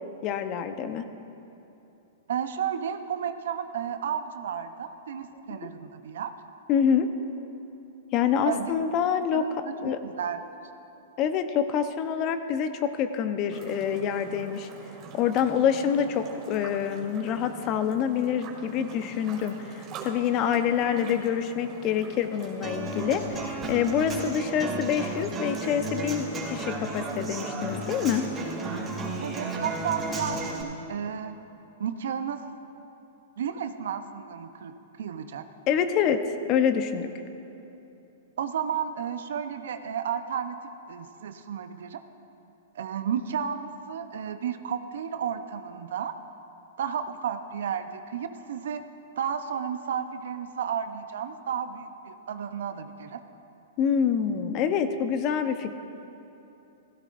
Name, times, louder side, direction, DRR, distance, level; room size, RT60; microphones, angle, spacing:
voice 1, 0.2-1.0 5.5-5.6 6.7-7.1 8.1-9.5 9.8-10.0 11.2-14.7 15.1-28.3 35.7-37.1 53.8-55.7, left 8 dB, 40° left, 9 dB, 0.8 m, -26 dB
voice 2, 2.3-6.3 8.4-8.7 9.1-10.4 29.2-31.4 31.8-32.4 33.4-34.7 35.0-35.5 38.4-40.6 40.9-42.0 42.7-46.1 46.8-48.8 49.2-53.2, right 8 dB, 70° right, 9 dB, 0.7 m, -32 dB
sound 1, 13.5-29.5, right 5 dB, 40° right, 2.2 m, -45 dB
Human voice / Acoustic guitar, 22.6-30.6, right 2 dB, 20° right, 3.1 m, -33 dB
16.0 x 16.0 x 2.6 m, 2.9 s
hypercardioid pair, 120°, 0 cm